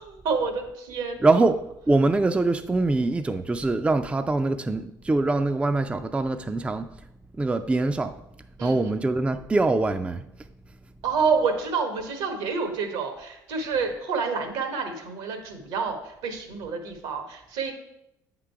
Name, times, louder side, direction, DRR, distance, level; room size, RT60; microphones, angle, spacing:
voice 1, 0.0-1.4 8.6-8.9 11.0-17.7, right 5 dB, 75° right, 5 dB, 1.3 m, -28 dB
voice 2, 1.2-1.6 1.9-6.9 7.4-8.2 8.6-10.2, right 2 dB, 10° right, 9 dB, 0.4 m, -23 dB
8.1 x 3.8 x 4.6 m, 0.82 s
hypercardioid pair, 70°, 10 cm